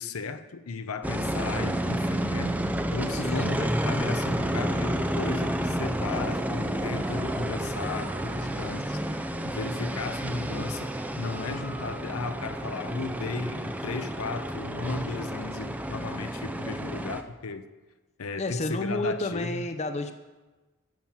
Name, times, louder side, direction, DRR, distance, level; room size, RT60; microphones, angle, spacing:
voice 1, 0.0-2.6 2.9-17.7 18.2-19.6, left 3 dB, 75° left, 0.7 m, -35 dB
sound 1, 1.0-17.2, right 1 dB, 5° right, 0.5 m, -30 dB
voice 2, 3.1-3.5 18.4-20.1, left 2 dB, 30° left, 0.7 m, -30 dB
Wind instrument woodwind instrument, 3.8-9.7 10.4-16.3, right 2 dB, 25° right, 1.0 m, -47 dB
13.5 x 7.4 x 5.8 m
head